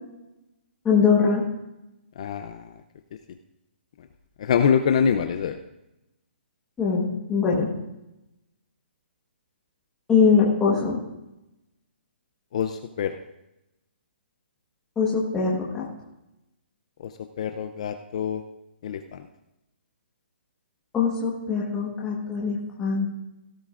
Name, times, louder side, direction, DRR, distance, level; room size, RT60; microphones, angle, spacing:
voice 1, 0.8-1.4 6.8-7.7 10.1-11.0 15.0-15.8 20.9-23.1, left 5 dB, 10° left, -5 dB, 1.3 m, -22 dB
voice 2, 2.2-2.8 4.0-4.1 4.4-5.6 12.5-13.2 17.0-17.1 17.4-18.4 18.8-19.3, left 7 dB, 35° left, 7 dB, 0.5 m, -25 dB
17.0 x 12.0 x 2.5 m, 0.94 s
hypercardioid pair, 175°, 6 cm